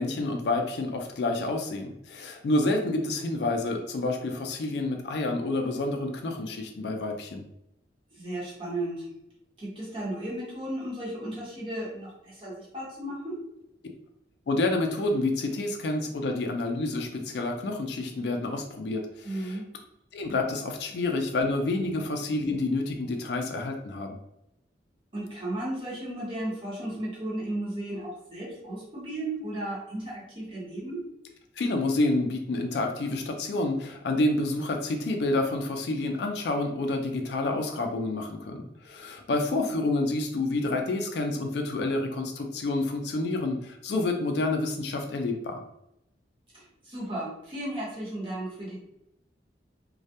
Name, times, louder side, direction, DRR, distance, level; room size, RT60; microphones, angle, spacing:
voice 1, 0.0-7.4 14.5-19.6 20.1-24.2 31.6-45.6, left 2 dB, 65° left, 4 dB, 0.3 m, -28 dB
voice 2, 8.1-9.1 9.6-13.4 19.2-19.7 21.9-22.0 25.1-31.0 46.5-48.8, right 1 dB, 30° right, -6 dB, 0.8 m, -35 dB
2.2 x 2.1 x 2.8 m, 0.82 s
head